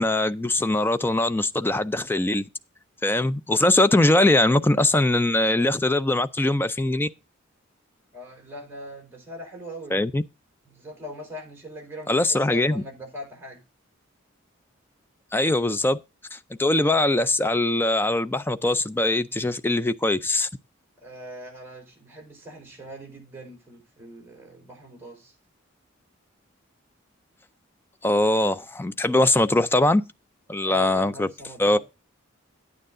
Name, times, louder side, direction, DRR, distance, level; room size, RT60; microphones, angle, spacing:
voice 1, 0.0-2.4 3.0-7.1 9.9-10.2 12.1-12.8 15.3-16.0 16.3-20.5 28.0-30.0 30.5-31.3 31.6-31.8, left 2 dB, 10° left, 0.4 m, -22 dB
voice 2, 8.1-10.1 10.6-13.6 21.0-25.3 30.6-31.8, equal, 10° right, 4.6 m, -41 dB
9.6 x 9.2 x 3.8 m
head